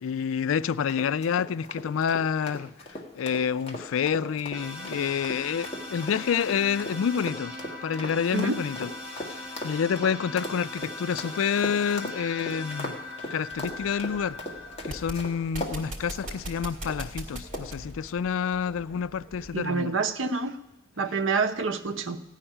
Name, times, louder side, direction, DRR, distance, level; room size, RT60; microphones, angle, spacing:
voice 1, 0.0-7.5 7.8-12.9 13.3-14.4 14.8-20.0, left 7 dB, 85° left, 0.4 m, -28 dB
sound 1, 0.9-15.8 16.2-16.3 16.9-17.1 17.5-17.8, left 1 dB, 30° left, 1.7 m, -38 dB
sound 2, 4.5-15.4, left 2 dB, 5° right, 4.1 m, -40 dB
sound 3, 13.5-19.6, right 1 dB, 40° right, 1.8 m, -41 dB
voice 2, 19.5-20.6 21.0-22.2, right 4 dB, 70° right, 0.8 m, -27 dB
15.5 x 5.8 x 9.9 m
head